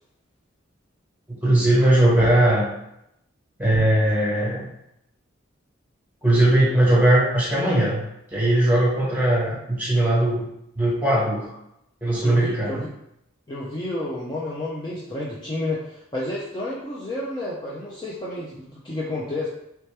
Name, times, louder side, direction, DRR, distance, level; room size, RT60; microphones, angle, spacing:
voice 1, 1.3-2.7 3.6-4.6 6.2-8.0 8.3-10.4 10.8-11.5 12.0-12.8, right 1 dB, 10° right, -6 dB, 1.2 m, -19 dB
voice 2, 12.2-12.9 13.5-19.5, left 1 dB, 20° left, -6 dB, 0.4 m, -30 dB
3.3 x 2.9 x 3.2 m, 0.80 s
head